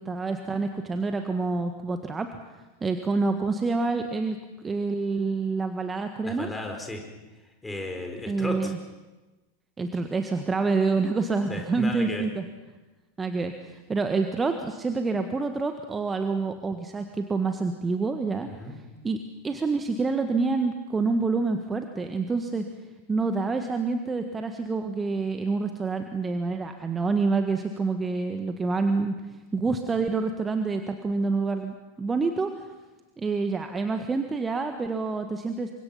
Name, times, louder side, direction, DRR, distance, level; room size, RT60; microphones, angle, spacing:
voice 1, 0.0-2.3 2.5-4.4 4.6-6.5 8.3-8.8 9.8-12.4 13.2-19.2 19.4-22.6 23.1-29.1 29.5-32.7 33.2-35.7, right 4 dB, 15° right, 6 dB, 1.7 m, -27 dB
voice 2, 6.2-7.0 7.6-8.7 11.5-12.2 18.4-18.8, left 1 dB, 10° left, 3 dB, 5.0 m, -34 dB
28.5 x 25.5 x 5.9 m, 1.2 s
figure-of-eight pair, 90°, 0 cm